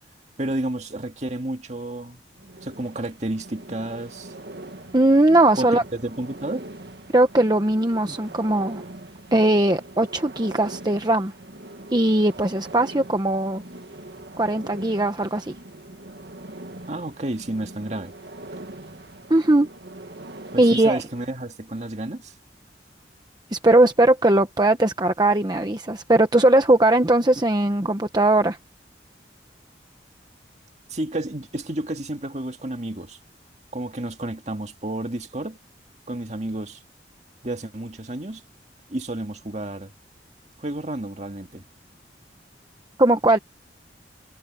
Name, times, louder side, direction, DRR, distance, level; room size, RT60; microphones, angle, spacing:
voice 1, 0.4-2.2 2.6-4.3 5.6-6.7 16.9-18.1 20.5-22.3 30.9-33.2 33.7-35.6 36.1-36.8 37.4-38.4 38.9-39.9 40.6-41.6, right 1 dB, 40° right, 2.0 m, -31 dB
sound 1, 2.4-21.3, right 1 dB, 70° right, 2.0 m, -42 dB
voice 2, 4.9-5.8 7.1-8.8 9.3-11.3 11.9-13.6 14.4-15.5 19.3-19.7 20.6-21.0 23.5-28.6 43.0-43.4, right 1 dB, 25° right, 1.0 m, -19 dB
head